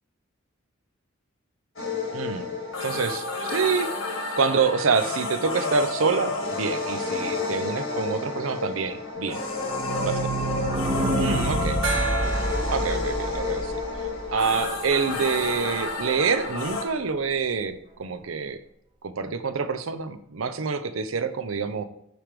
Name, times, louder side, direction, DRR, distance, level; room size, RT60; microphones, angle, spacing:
sound 1, 1.8-16.8, left 3 dB, 90° left, 1.6 m, -30 dB
voice 1, 2.1-2.5 2.8-3.9 4.4-9.4 10.0-10.2 11.2-11.8 12.7-13.7 14.3-18.6 19.0-21.8, right 5 dB, 90° right, 10 dB, 0.6 m, -26 dB
sound 2, 9.3-14.9 15.2-15.3 15.4-15.5 15.8-15.9, right 1 dB, 20° right, 0.6 m, -28 dB
Gong, 11.8-15.1, right 4 dB, 75° right, 1.6 m, -33 dB
9.0 x 3.4 x 5.0 m, 0.74 s
head